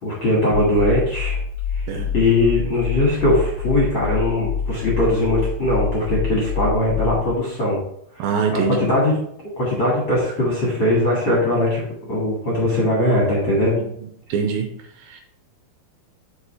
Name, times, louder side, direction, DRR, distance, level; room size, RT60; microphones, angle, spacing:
voice 1, 0.0-1.4 1.7-1.9 2.1-7.8 8.1-9.2 9.6-13.8, left 1 dB, 45° left, -4 dB, 1.7 m, -20 dB
sound 1, 0.5-7.4, left 6 dB, 85° left, 2.5 m, -26 dB
voice 2, 8.2-8.8 14.3-14.7 15.1-15.2, right 6 dB, 80° right, 4 dB, 2.3 m, -23 dB
6.4 x 5.3 x 4.3 m, 0.69 s
omnidirectional pair, 4.6 m